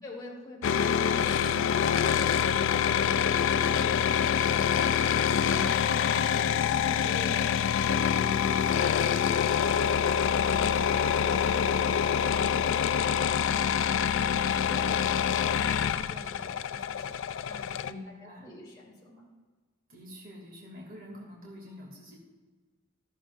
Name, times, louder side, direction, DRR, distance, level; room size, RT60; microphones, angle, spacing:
voice 1, 0.0-5.6 6.0-6.4 6.8-11.9 12.3-17.1 17.4-19.2, left 1 dB, 20° left, -5 dB, 3.0 m, -48 dB
sound 1, 0.6-17.9, left 8 dB, 65° left, 0.4 m, -26 dB
voice 2, 17.8-18.5 19.9-22.2, left 1 dB, 45° right, -2 dB, 2.4 m, -46 dB
14.5 x 13.5 x 2.5 m, 1.3 s
head